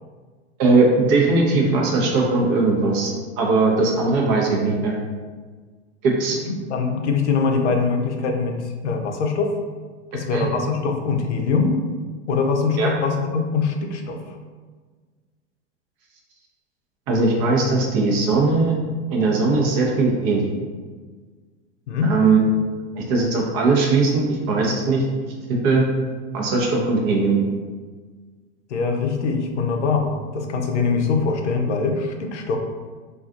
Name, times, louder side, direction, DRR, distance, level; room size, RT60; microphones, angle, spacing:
voice 1, 0.6-4.9 6.0-6.4 10.3-10.5 12.8-12.9 17.1-18.7 19.1-20.5 22.0-22.4 22.9-25.0 25.5-25.8 26.3-27.4, right 3 dB, 45° right, -1 dB, 0.8 m, -19 dB
voice 2, 6.5-8.6 8.8-9.5 10.1-11.7 12.3-14.2 21.9-22.1 28.7-32.6, left 4 dB, 80° left, 3 dB, 0.5 m, -22 dB
2.4 x 2.3 x 2.5 m, 1.5 s
hypercardioid pair, 95°, 34 cm